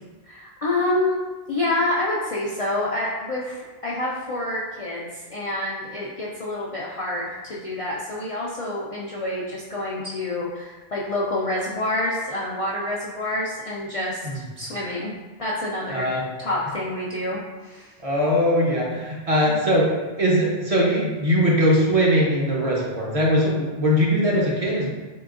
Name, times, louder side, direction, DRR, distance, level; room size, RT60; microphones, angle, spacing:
voice 1, 0.2-1.2 1.5-15.1 15.4-16.1 16.4-17.9 19.5-19.6, left 1 dB, 55° left, -5 dB, 0.4 m, -27 dB
voice 2, 15.9-16.3 18.0-24.9, equal, 40° right, -4 dB, 0.7 m, -21 dB
3.7 x 3.4 x 2.4 m, 1.2 s
omnidirectional pair, 1.0 m